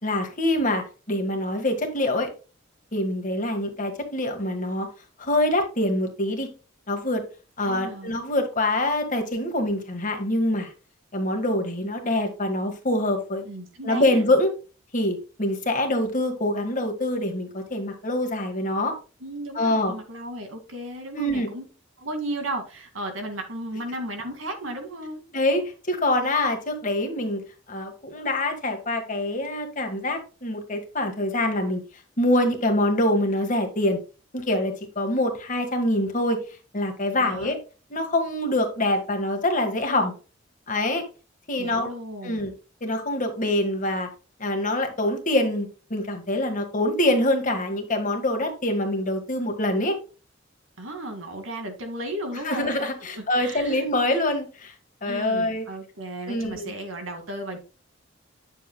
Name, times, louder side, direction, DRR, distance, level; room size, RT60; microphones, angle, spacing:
voice 1, 0.0-2.3 2.9-4.9 5.2-6.5 6.9-7.2 7.6-10.7 11.1-13.4 13.8-14.5 14.9-19.0 19.5-19.9 21.1-21.5 25.3-27.4 27.7-31.8 32.2-34.0 34.3-36.4 36.7-37.6 37.9-40.1 40.7-41.0 41.5-41.9 42.2-42.5 42.8-44.1 44.4-50.0 52.4-54.7 55.0-55.6 56.3-56.7, left 1 dB, 40° left, 4 dB, 1.7 m, -25 dB
voice 2, 7.6-8.2 13.4-14.2 19.2-21.6 22.0-25.2 37.2-37.5 41.6-42.5 50.8-53.8 55.0-57.6, right 1 dB, 85° right, 5 dB, 2.1 m, -34 dB
9.0 x 7.2 x 2.2 m, 0.34 s
head